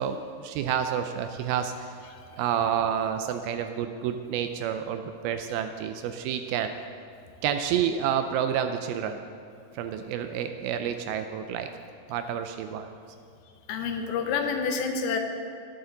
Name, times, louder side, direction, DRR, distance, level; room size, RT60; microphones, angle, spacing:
voice 1, 0.0-2.0 2.4-6.7 7.4-9.2 9.7-11.7 12.1-12.9, right 9 dB, 80° right, 8 dB, 2.3 m, -29 dB
voice 2, 2.0-2.4 13.7-15.2, left 5 dB, 75° left, 5 dB, 2.6 m, -29 dB
19.5 x 6.9 x 3.8 m, 2.4 s
omnidirectional pair, 4.6 m